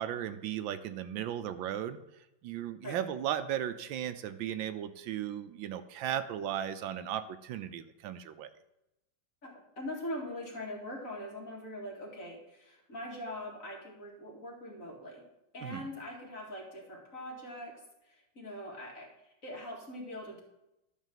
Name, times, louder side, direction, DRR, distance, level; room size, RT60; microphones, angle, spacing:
voice 1, 0.0-2.0 2.4-8.5 15.6-15.9, right 10 dB, 80° right, 11 dB, 1.3 m, -36 dB
voice 2, 9.4-15.2 15.5-20.4, left 1 dB, 40° left, -1 dB, 2.4 m, -42 dB
12.0 x 4.1 x 7.5 m, 0.89 s
omnidirectional pair, 2.2 m